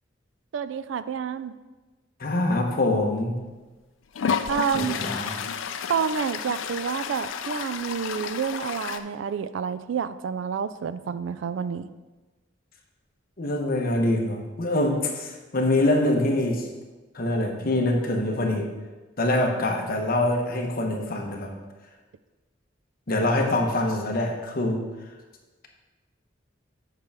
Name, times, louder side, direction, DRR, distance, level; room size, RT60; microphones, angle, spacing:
voice 1, 0.5-1.5 4.5-5.0 5.9-11.9, right 7 dB, 70° right, 14 dB, 0.3 m, -29 dB
voice 2, 2.2-3.4 4.7-5.3 13.4-16.7 17.1-18.7 19.2-21.5 23.1-24.8, left 1 dB, 50° left, 2 dB, 1.0 m, -24 dB
Toilet flush, 3.2-3.3 4.1-9.0, left 6 dB, 85° left, 0.4 m, -31 dB
8.0 x 6.0 x 3.5 m, 1.2 s
head